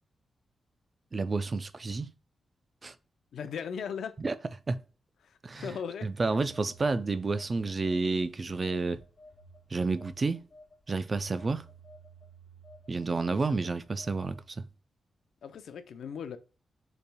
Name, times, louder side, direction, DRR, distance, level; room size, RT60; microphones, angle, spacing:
voice 1, 1.1-2.1 2.8-2.9 4.2-4.4 4.7-4.8 5.4-5.7 6.0-9.0 9.7-10.5 10.9-11.7 12.9-14.6, right 3 dB, 30° right, 0.4 m, -30 dB
voice 2, 3.3-4.2 5.2-6.1 13.3-13.7 15.4-16.4, left 7 dB, 80° left, 0.5 m, -38 dB
Telephone, 6.3-8.3 8.6-14.5, right 2 dB, 45° left, 2.2 m, -54 dB
7.0 x 3.3 x 2.2 m
wide cardioid pair, 160°, 0 cm